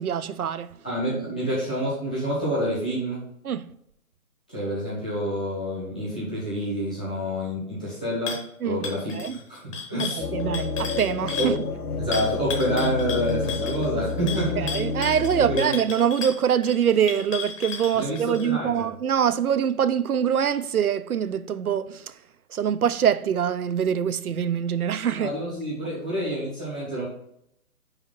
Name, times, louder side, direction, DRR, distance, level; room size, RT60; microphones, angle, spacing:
voice 1, 0.0-0.8 3.4-3.7 8.6-8.8 9.1-9.4 10.0-11.6 14.6-22.2 22.5-25.3, right 8 dB, 85° right, 0.7 m, -24 dB
voice 2, 0.8-3.3 4.5-9.1 9.5-10.2 11.4-11.5 12.0-14.7 15.4-15.7 17.9-18.8 25.1-27.1, equal, 5° left, 0.5 m, -28 dB
sound 1, 8.3-8.5 8.8-11.6 12.1-18.5, left 6 dB, 25° left, 0.9 m, -34 dB
sound 2, 10.2-15.6, left 4 dB, 80° left, 0.8 m, -30 dB
5.7 x 5.0 x 5.5 m
hypercardioid pair, 155°, 43 cm